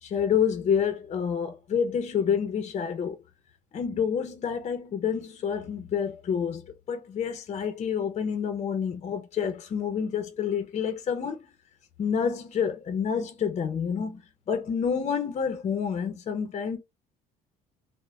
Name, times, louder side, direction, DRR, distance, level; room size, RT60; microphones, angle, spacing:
voice 1, 0.0-3.2 3.7-11.4 12.0-14.2 14.5-16.8, left 7 dB, 40° left, 0.6 m, -28 dB
3.1 x 2.1 x 2.3 m
cardioid pair, 100°, 17 cm